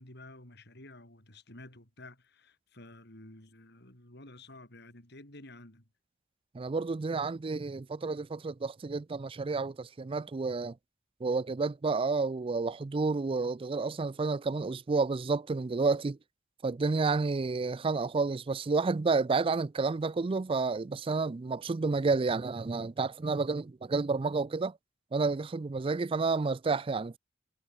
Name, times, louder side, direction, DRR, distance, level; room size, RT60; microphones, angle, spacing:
voice 1, 0.0-5.9, left 2 dB, 60° left, 6.7 m, -51 dB
voice 2, 6.5-10.7 11.2-16.2 16.6-24.8 25.1-27.2, right 4 dB, 30° right, 0.4 m, -30 dB
head